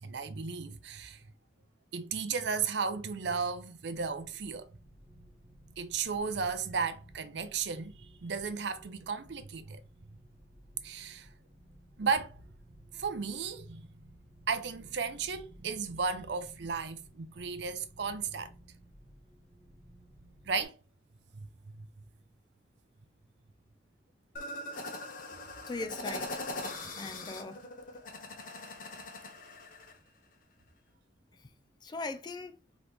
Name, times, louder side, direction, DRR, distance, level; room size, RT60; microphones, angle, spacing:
voice 1, 0.0-1.2 1.9-4.7 5.8-9.8 10.8-11.3 12.0-12.4 12.9-13.9 14.5-18.5 20.5-20.7 21.3-21.5 21.8-21.9, right 5 dB, 65° right, 0.5 m, -34 dB
sound 1, 3.9-20.6, right 1 dB, 30° right, 1.2 m, -57 dB
sound 2, 24.4-30.0, left 2 dB, 45° left, 0.8 m, -41 dB
voice 2, 25.7-26.4 26.8-27.6 31.4-31.5 31.8-32.6, left 3 dB, 25° left, 0.3 m, -40 dB
3.9 x 3.0 x 3.4 m
head